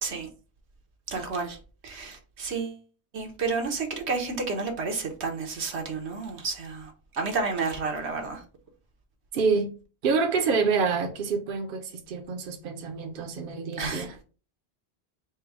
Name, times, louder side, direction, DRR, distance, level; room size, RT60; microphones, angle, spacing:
voice 1, 1.1-1.6 1.8-2.8 3.1-8.4 13.8-14.1, right 4 dB, 85° right, 1.3 m, -31 dB
voice 2, 9.3-9.7 10.0-14.2, right 5 dB, 60° right, 0.8 m, -27 dB
4.4 x 2.1 x 4.7 m
omnidirectional pair, 1.1 m